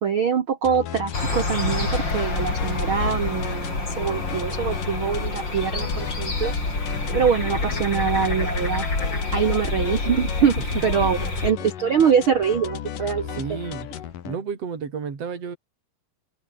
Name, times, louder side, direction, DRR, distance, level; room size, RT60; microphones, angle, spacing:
voice 1, 0.0-6.5 7.1-8.8 9.3-13.4, right 7 dB, 75° right, 1.2 m, -24 dB
sound 1, 0.6-14.4, left 10 dB, 60° left, 3.2 m, -35 dB
sound 2, 1.1-11.5, left 2 dB, 25° left, 6.7 m, -27 dB
voice 2, 13.3-13.9 14.2-15.6, right 6 dB, 40° right, 4.6 m, -31 dB
omnidirectional pair, 4.6 m